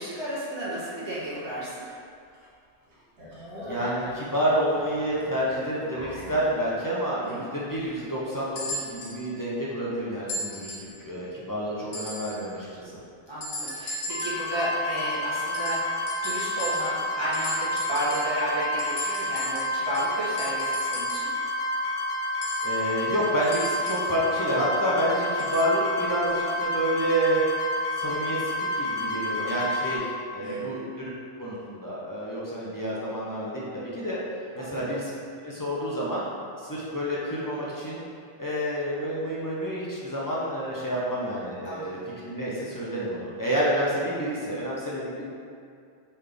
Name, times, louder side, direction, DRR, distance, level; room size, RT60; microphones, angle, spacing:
voice 1, 0.0-1.8 7.2-7.4 13.3-21.3 30.4-30.7 34.6-34.8 41.6-42.0, right 1 dB, 25° right, -11 dB, 0.9 m, -32 dB
sound 1, 1.3-1.4 1.9-2.0 2.3-2.5 2.8-6.6, left 1 dB, 65° right, 1.2 m, -42 dB
voice 2, 3.7-13.0 22.6-27.4 27.9-31.1 31.4-34.2 34.5-35.1 35.4-36.2 36.6-38.0 38.4-42.0 42.2-45.3, equal, 30° left, -7 dB, 0.3 m, -29 dB
sound 2, 8.5-9.2 10.3-11.0 11.9-12.5 13.4-14.5 15.5-17.1 17.3-18.4 18.8-21.4 22.4-24.1 25.4-25.7 26.6-26.7, equal, 80° left, 1.4 m, -37 dB
sound 3, 14.1-30.0, left 1 dB, 65° left, 1.3 m, -29 dB
4.0 x 3.3 x 3.4 m, 2.3 s
omnidirectional pair, 1.2 m